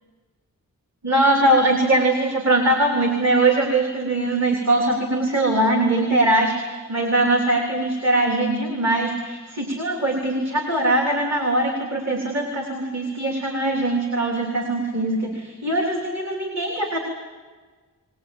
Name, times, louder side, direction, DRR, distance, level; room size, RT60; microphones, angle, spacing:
voice 1, 1.0-17.0, right 2 dB, 50° right, 2 dB, 3.5 m, -21 dB
21.5 x 20.0 x 8.7 m, 1.4 s
wide cardioid pair, 130°, 34 cm